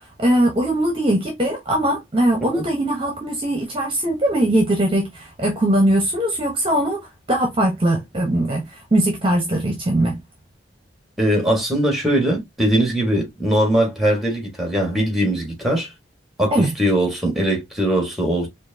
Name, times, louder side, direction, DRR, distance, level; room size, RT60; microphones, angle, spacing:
voice 1, 0.2-7.0 7.3-10.2 16.5-16.7, right 1 dB, 25° right, 1.0 m, -20 dB
voice 2, 11.2-15.9 16.4-18.5, right 1 dB, ahead, 1.5 m, -20 dB
4.5 x 2.7 x 2.7 m
head